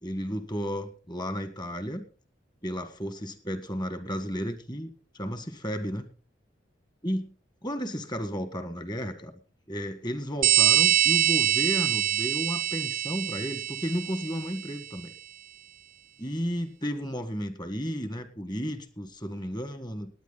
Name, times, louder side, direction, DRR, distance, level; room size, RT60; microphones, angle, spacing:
voice 1, 0.0-2.0 2.6-6.1 7.0-7.3 7.6-9.3 9.7-15.1 16.2-20.1, equal, 25° left, 9 dB, 1.7 m, -33 dB
sound 1, 10.4-14.7, right 12 dB, 45° right, 0.5 m, -24 dB
19.0 x 9.4 x 4.1 m, 0.36 s
head